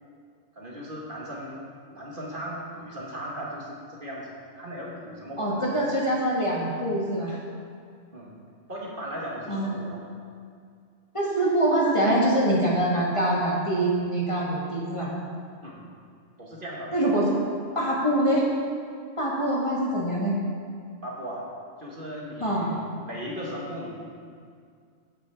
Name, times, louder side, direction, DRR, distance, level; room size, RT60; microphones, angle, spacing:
voice 1, 0.5-1.6 1.9-5.6 8.1-8.3 8.7-10.0 15.6-15.8 16.4-16.9 21.0-21.5 21.8-22.8 23.0-23.9, equal, 40° right, -4 dB, 1.8 m, -37 dB
voice 2, 5.4-7.4 9.5-9.7 11.1-15.1 16.9-17.3 17.7-18.4 19.2-20.3 22.4-22.7, right 1 dB, 25° left, -5 dB, 1.7 m, -24 dB
13.5 x 8.6 x 3.5 m, 2.2 s
omnidirectional pair, 1.3 m